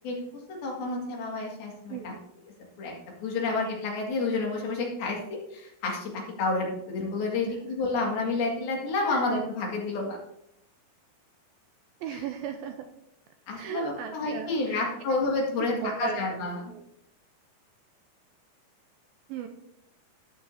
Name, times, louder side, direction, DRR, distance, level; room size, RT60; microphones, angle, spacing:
voice 1, 0.6-2.1 2.8-2.9 3.2-10.2 12.1-12.2 13.5-16.7, left 3 dB, 65° left, -1 dB, 3.8 m, -30 dB
voice 2, 1.9-2.2 7.4-7.5 9.1-9.2 12.0-12.9 13.5-14.9 15.3-16.8 19.3-19.5, right 8 dB, 80° right, 6 dB, 2.2 m, -37 dB
12.5 x 10.5 x 2.7 m, 0.77 s
omnidirectional pair, 4.8 m